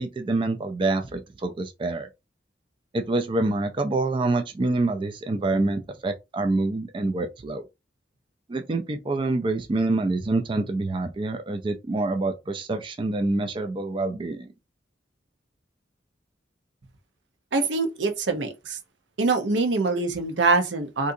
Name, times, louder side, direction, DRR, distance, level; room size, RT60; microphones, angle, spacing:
voice 1, 0.0-2.1 2.9-7.6 8.5-14.5, right 2 dB, 25° right, 0.3 m, -26 dB
voice 2, 17.5-18.8 19.2-21.1, right 3 dB, 80° right, 0.7 m, -24 dB
3.7 x 2.6 x 2.6 m
head